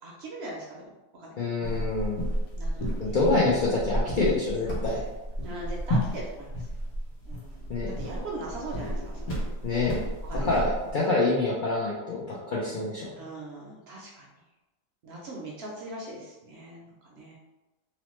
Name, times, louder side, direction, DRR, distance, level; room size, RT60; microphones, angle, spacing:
voice 1, 0.0-1.3 2.5-3.2 5.4-6.7 7.2-9.4 10.2-10.5 13.2-14.3 15.0-17.4, right 2 dB, 65° right, -2 dB, 0.7 m, -40 dB
voice 2, 1.4-2.2 3.0-5.0 7.7-8.0 9.6-10.0 10.3-13.3, left 3 dB, 65° left, -5 dB, 0.4 m, -26 dB
sound 1, 1.6-10.9, equal, 85° left, 1.2 m, -32 dB
2.9 x 2.0 x 3.0 m, 1.1 s
omnidirectional pair, 1.4 m